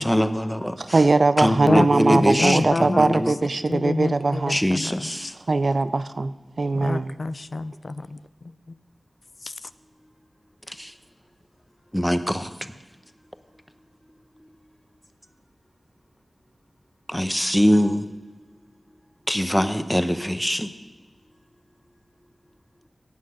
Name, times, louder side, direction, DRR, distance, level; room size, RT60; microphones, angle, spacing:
voice 1, 0.0-1.0 1.4-3.3 4.5-5.3 10.7-10.9 11.9-12.5 17.1-18.1 19.3-20.7, equal, 5° left, 10 dB, 0.9 m, -23 dB
voice 2, 0.8-4.6 5.5-7.2, right 3 dB, 60° right, 13 dB, 0.5 m, -21 dB
voice 3, 1.7-3.2 3.7-4.4 4.7-5.1 6.8-8.2 9.4-9.5, left 3 dB, 60° left, 14 dB, 0.4 m, -27 dB
17.5 x 6.3 x 5.7 m, 1.3 s
cardioid pair, 40°, 0 cm